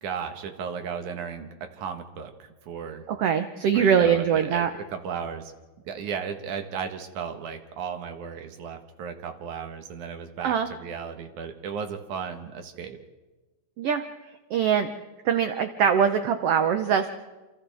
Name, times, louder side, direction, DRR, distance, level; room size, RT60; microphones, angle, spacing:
voice 1, 0.0-3.0 3.7-5.5 5.9-13.0, right 6 dB, 85° right, 6 dB, 2.9 m, -35 dB
voice 2, 3.1-4.7 10.4-10.7 13.8-14.0 14.5-14.9 15.2-17.1, right 7 dB, 70° right, 8 dB, 1.6 m, -22 dB
27.5 x 27.5 x 3.5 m, 1.2 s
omnidirectional pair, 3.3 m